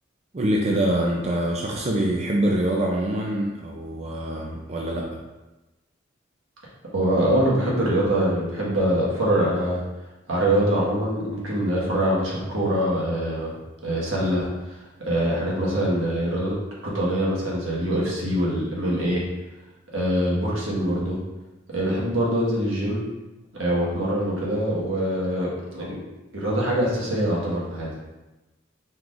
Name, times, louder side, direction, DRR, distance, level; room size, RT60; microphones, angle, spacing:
voice 1, 0.3-5.1, right 1 dB, 35° right, -2 dB, 0.4 m, -24 dB
voice 2, 6.9-9.8 10.3-13.5 13.8-16.5 16.8-19.2 19.9-21.2 21.7-23.0 23.5-26.0 26.3-28.0, right 1 dB, 85° right, -5 dB, 1.3 m, -24 dB
4.4 x 2.4 x 3.8 m, 1.1 s
head